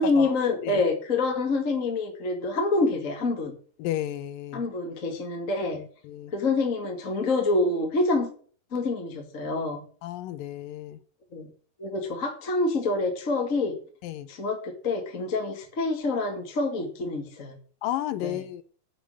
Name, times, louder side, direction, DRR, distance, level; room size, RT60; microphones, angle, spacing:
voice 1, 0.0-3.6 4.5-5.8 6.3-8.3 8.7-9.8 11.3-11.5 11.8-13.8 14.3-17.6 18.2-18.4, left 3 dB, 30° left, 1.9 m, -26 dB
voice 2, 3.8-4.6 5.7-6.3 10.0-11.0 14.0-14.3 17.8-18.6, left 13 dB, 75° left, 2.3 m, -33 dB
9.6 x 8.1 x 6.6 m
omnidirectional pair, 4.3 m